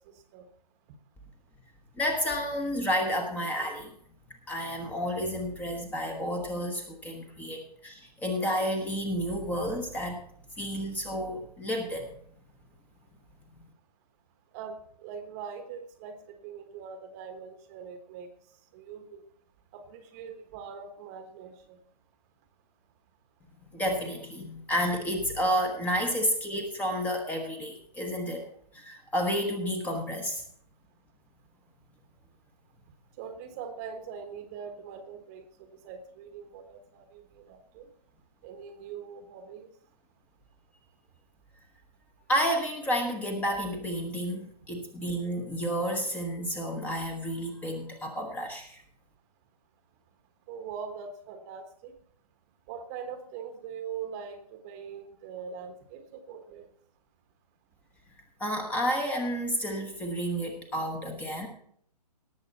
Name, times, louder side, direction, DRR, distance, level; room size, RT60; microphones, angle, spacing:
voice 1, 1.9-3.9 4.5-10.2 10.6-12.2 23.7-30.4 42.3-48.8 58.4-61.5, equal, 5° left, 4 dB, 1.2 m, -31 dB
voice 2, 14.5-18.3 18.7-19.2 19.7-21.8 33.2-37.2 37.5-37.9 38.4-39.7 50.5-51.9 52.7-56.6, right 6 dB, 25° right, 7 dB, 1.2 m, -42 dB
18.0 x 7.1 x 4.2 m, 0.64 s
hypercardioid pair, 155°, 21 cm